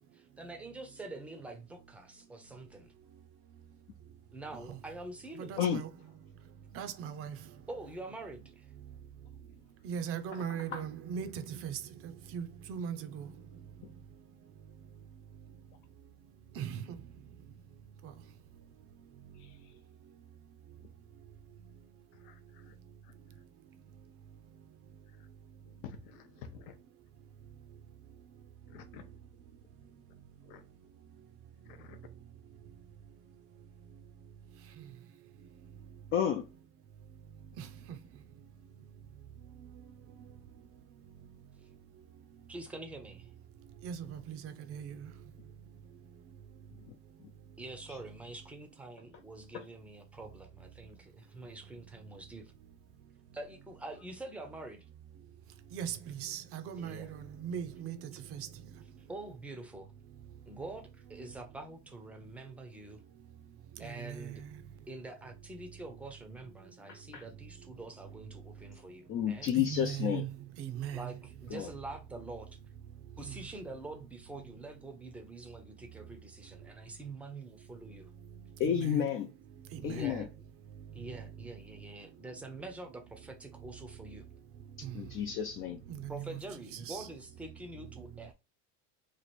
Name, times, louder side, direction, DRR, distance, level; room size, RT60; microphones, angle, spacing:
voice 1, 0.1-2.9 4.3-5.6 7.7-8.7 42.5-43.3 47.6-52.5 53.3-54.8 56.8-57.1 59.1-59.9 60.5-63.0 63.8-64.4 64.9-69.5 70.9-72.5 73.2-78.1 79.8-80.3 80.9-84.2 86.1-88.3, right 2 dB, 5° right, 0.6 m, -46 dB
voice 2, 5.4-5.9 6.7-7.4 9.8-11.8 12.3-13.2 16.6-16.8 37.6-37.7 43.8-45.1 55.7-58.0 58.3-58.5 63.8-64.4 69.6-70.3 70.6-71.1 73.2-73.3 78.6-79.1 79.7-80.0 84.8-84.9 85.9-86.4 86.9-87.1, right 8 dB, 45° right, 0.6 m, -39 dB
voice 3, 19.3-19.8 20.8-20.9 22.1-22.8 23.0-23.1 25.1-25.3 25.7-26.8 28.7-29.1 30.4-30.6 31.6-32.0, left 7 dB, 85° left, 0.8 m, -51 dB
voice 4, 36.1-36.5 46.8-47.3 47.9-48.0 49.5-49.7 66.9-67.2 69.1-70.3 71.5-71.7 78.6-79.3 79.8-80.3 84.9-85.8, left 9 dB, 40° left, 0.5 m, -32 dB
3.1 x 2.5 x 4.1 m
cardioid pair, 145°, 32 cm